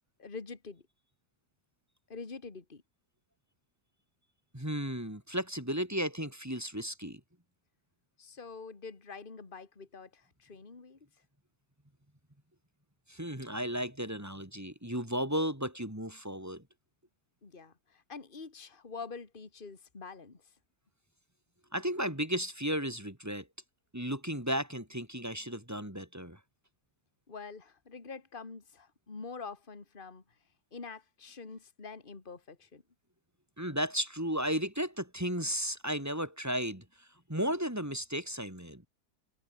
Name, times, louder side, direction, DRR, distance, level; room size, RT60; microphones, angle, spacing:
voice 1, 0.2-0.8 2.1-2.8 8.2-11.0 17.4-20.4 27.3-30.2 30.7-32.8, left 4 dB, 35° left, 2.3 m, -46 dB
voice 2, 4.5-7.2 13.1-16.6 21.7-23.5 23.9-26.4 33.6-36.8 37.3-38.8, equal, 10° right, 3.0 m, -34 dB
omnidirectional pair, 1.7 m